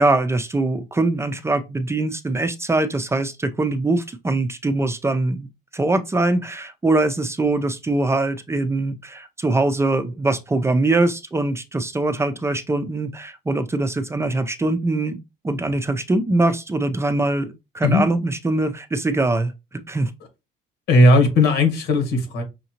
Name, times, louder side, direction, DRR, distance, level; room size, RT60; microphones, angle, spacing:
voice 1, 0.0-5.5 5.7-15.2 15.4-20.1, right 2 dB, 15° right, 0.5 m, -22 dB
voice 2, 20.9-22.4, left 1 dB, 85° left, 1.7 m, -16 dB
5.7 x 2.7 x 2.9 m
cardioid pair, 110°, 17 cm